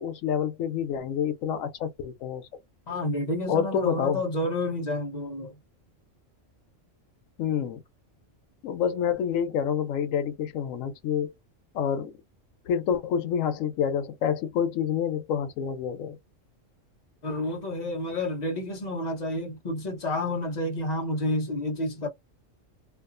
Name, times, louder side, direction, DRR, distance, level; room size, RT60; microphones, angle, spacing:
voice 1, 0.0-2.6 3.5-4.2 7.4-7.8 8.6-11.3 11.7-12.1 12.7-16.2, left 8 dB, 85° left, 1.0 m, -28 dB
voice 2, 2.9-5.5 17.2-22.1, left 1 dB, 45° left, 0.6 m, -30 dB
2.4 x 2.4 x 2.4 m
omnidirectional pair, 1.3 m